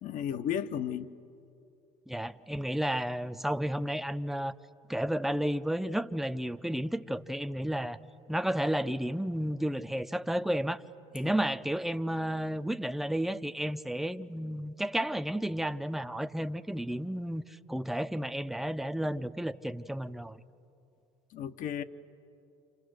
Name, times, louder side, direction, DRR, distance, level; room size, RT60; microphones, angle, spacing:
voice 1, 0.0-1.1 11.2-11.3 21.3-21.8, left 9 dB, 60° left, 1.0 m, -34 dB
voice 2, 2.1-4.5 4.9-8.0 8.3-10.8 11.1-20.4, right 1 dB, ahead, 0.7 m, -32 dB
28.5 x 27.0 x 6.5 m
supercardioid pair, 80°, 16 cm